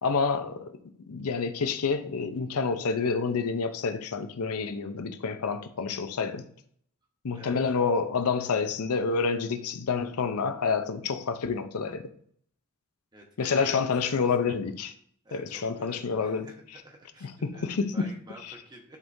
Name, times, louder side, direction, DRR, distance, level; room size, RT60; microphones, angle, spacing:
voice 1, 0.0-6.4 7.2-12.1 13.4-14.9 15.3-16.5 17.2-18.1 18.4-18.6, left 5 dB, 90° left, 0.6 m, -28 dB
voice 2, 7.3-8.0 13.1-14.2 15.2-17.7 17.9-19.0, equal, 20° right, 1.1 m, -50 dB
10.5 x 3.6 x 2.7 m
head